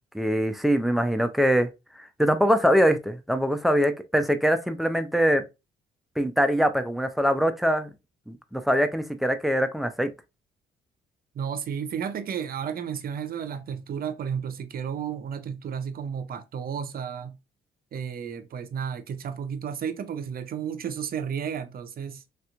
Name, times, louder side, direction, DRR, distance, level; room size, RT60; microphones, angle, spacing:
voice 1, 0.1-1.7 2.0-5.4 6.2-7.9 8.3-10.1, equal, ahead, 0.5 m, -23 dB
voice 2, 11.3-17.4 17.9-22.2, right 7 dB, 50° right, 0.5 m, -32 dB
3.3 x 2.9 x 2.4 m
cardioid pair, 90°, 20 cm